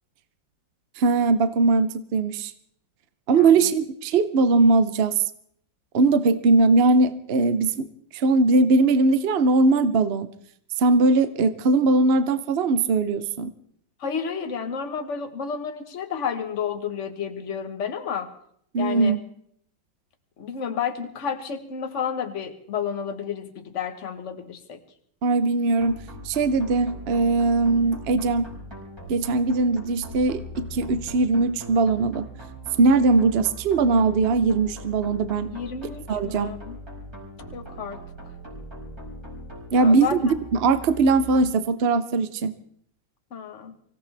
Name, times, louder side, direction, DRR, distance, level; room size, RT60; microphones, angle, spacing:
voice 1, 1.0-2.5 3.3-5.2 5.9-7.9 8.1-10.3 10.8-13.5 18.7-19.2 25.2-28.5 29.1-32.3 32.8-35.5 36.1-36.5 39.7-42.5, right 3 dB, 65° right, 12 dB, 0.6 m, -20 dB
voice 2, 14.0-18.3 18.8-19.2 20.4-24.8 35.5-36.8 37.5-38.0 39.7-40.3 43.3-43.7, left 7 dB, 45° left, 6 dB, 1.4 m, -31 dB
sound 1, 25.8-41.4, equal, 15° right, 5.5 m, -40 dB
24.5 x 16.5 x 3.4 m, 0.66 s
omnidirectional pair, 2.0 m